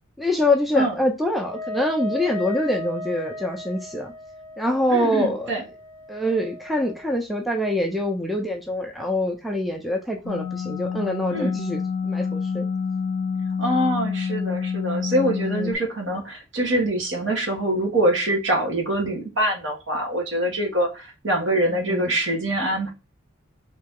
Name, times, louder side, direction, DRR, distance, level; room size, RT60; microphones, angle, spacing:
voice 1, 0.2-4.1 4.6-5.6 6.1-12.7 15.5-15.8 21.7-22.1, left 1 dB, ahead, 0.4 m, -25 dB
Wind instrument woodwind instrument, 1.4-7.1, left 1 dB, 40° right, 2.7 m, -35 dB
voice 2, 4.9-5.6 11.3-11.5 13.6-22.9, right 1 dB, 65° right, 1.4 m, -24 dB
sound 1, 10.3-15.7, left 6 dB, 60° left, 0.5 m, -27 dB
4.0 x 2.8 x 3.6 m
head